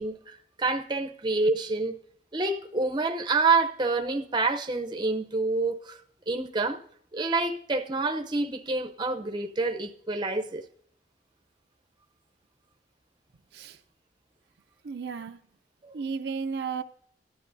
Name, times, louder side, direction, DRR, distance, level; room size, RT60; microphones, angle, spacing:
voice 1, 0.0-2.0 2.3-6.0 6.3-6.8 7.1-10.6 15.8-15.9, right 3 dB, 25° right, 0.7 m, -27 dB
voice 2, 14.8-15.4 15.9-16.8, right 5 dB, 70° right, 0.5 m, -33 dB
14.5 x 11.0 x 2.6 m
head